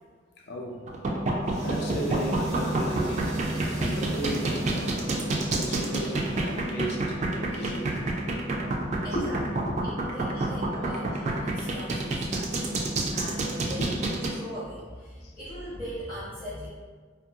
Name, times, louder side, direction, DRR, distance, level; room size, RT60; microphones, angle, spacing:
voice 1, 0.5-0.9 1.3-8.2 8.6-9.8 13.8-14.0 15.2-15.3, equal, 60° left, 0 dB, 0.5 m, -36 dB
sound 1, 0.9-14.3, right 2 dB, 40° right, 0.3 m, -28 dB
sound 2, 1.4-6.8, right 1 dB, 85° right, 0.7 m, -35 dB
voice 2, 9.0-9.4 9.8-16.7, equal, 15° left, -12 dB, 0.6 m, -40 dB
2.6 x 2.5 x 2.8 m, 1.5 s
head